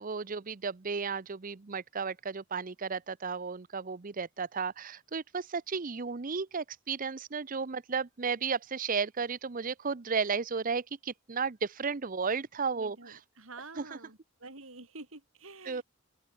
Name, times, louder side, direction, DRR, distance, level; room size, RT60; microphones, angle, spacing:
voice 1, 0.0-13.2 13.8-14.0 15.6-15.8, right 5 dB, 40° right, 0.7 m, -34 dB
voice 2, 12.8-15.8, right 3 dB, 75° right, 4.2 m, -48 dB
open air
head